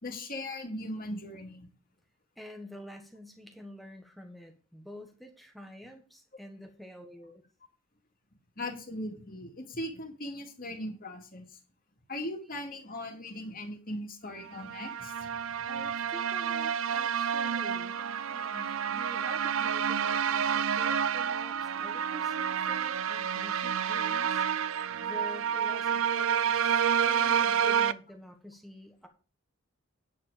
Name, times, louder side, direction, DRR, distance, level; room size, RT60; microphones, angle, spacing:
voice 1, 0.0-1.7 8.6-11.6 12.1-15.3, left 1 dB, 40° left, 2 dB, 2.6 m, -39 dB
voice 2, 2.4-7.4 15.7-18.0 18.3-24.4 24.7-29.1, left 1 dB, ahead, 4 dB, 1.2 m, -48 dB
sound 1, 14.5-27.9, right 8 dB, 65° right, 0.5 m, -29 dB
9.7 x 7.9 x 5.0 m, 0.36 s
head